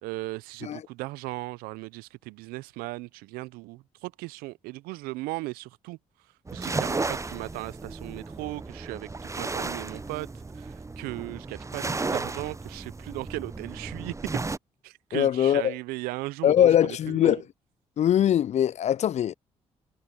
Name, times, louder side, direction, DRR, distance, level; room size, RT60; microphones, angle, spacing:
voice 1, 0.0-6.0 6.5-10.3 10.5-14.1 14.8-17.4, right 21 dB, 80° right, 0.7 m, -37 dB
sound 1, 6.5-14.6, right 3 dB, 20° right, 0.7 m, -34 dB
voice 2, 15.1-15.7 16.4-17.4 18.0-19.3, left 10 dB, 50° left, 0.4 m, -22 dB
hypercardioid pair, 45°, 15 cm